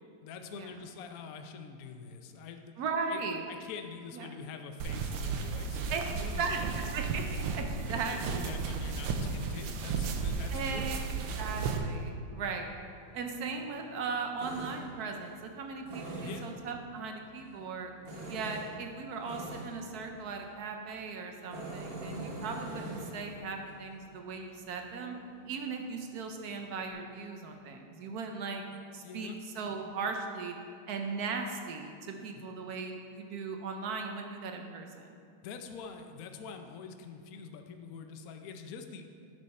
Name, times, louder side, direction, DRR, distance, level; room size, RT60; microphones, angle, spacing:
voice 1, 0.2-2.7 3.1-3.2 3.5-6.6 7.9-11.1 16.2-16.5 29.0-29.4 32.4-32.5 35.4-39.0, left 5 dB, 80° left, 6 dB, 0.8 m, -45 dB
voice 2, 2.8-3.4 4.1-4.3 5.9-6.0 6.4-8.5 10.5-12.7 13.1-17.9 18.3-25.2 25.5-28.6 28.9-30.5 30.9-31.9 32.2-35.1, right 4 dB, 70° right, 4 dB, 0.9 m, -38 dB
sound 1, 4.8-11.8, right 5 dB, 85° right, 1.6 m, -34 dB
Tools, 12.8-26.9, right 2 dB, 40° right, 0.9 m, -46 dB
10.0 x 6.7 x 4.2 m, 2.4 s
omnidirectional pair, 2.4 m